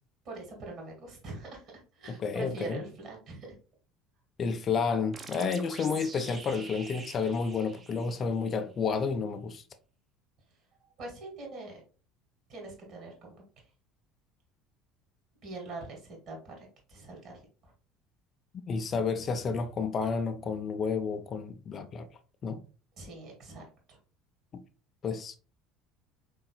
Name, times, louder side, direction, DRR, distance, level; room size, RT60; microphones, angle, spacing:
voice 1, 0.3-3.6 11.0-11.8 12.5-13.4 15.4-17.3 17.6-17.7 23.0-24.0, right 2 dB, 50° right, 1.9 m, -43 dB
voice 2, 2.1-2.8 4.4-9.6 18.7-22.1 22.4-22.6 24.5-24.6 25.0-25.4, left 5 dB, 40° left, 0.4 m, -31 dB
sound 1, 5.1-8.6, right 4 dB, 30° right, 0.7 m, -46 dB
3.9 x 3.8 x 2.2 m
figure-of-eight pair, 65°, 0 cm